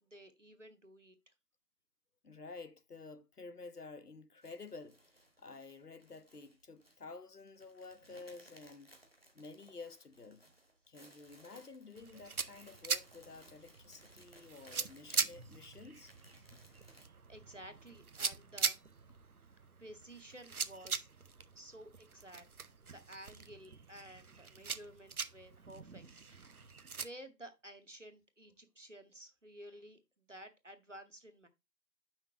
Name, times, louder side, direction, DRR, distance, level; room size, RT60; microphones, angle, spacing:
voice 1, 0.0-1.3 16.5-16.6 17.3-18.8 19.8-21.1 21.5-22.5 22.8-26.5 27.0-31.5, right 1 dB, 50° right, 1.0 m, -53 dB
voice 2, 2.2-5.0 5.4-8.9 9.3-10.4 10.9-16.1, left 3 dB, 70° left, 0.9 m, -51 dB
sound 1, 4.4-17.1, right 1 dB, 40° left, 1.0 m, -62 dB
sound 2, 11.9-27.1, right 5 dB, 65° right, 0.6 m, -42 dB
7.6 x 5.8 x 2.8 m
figure-of-eight pair, 170°, 48 cm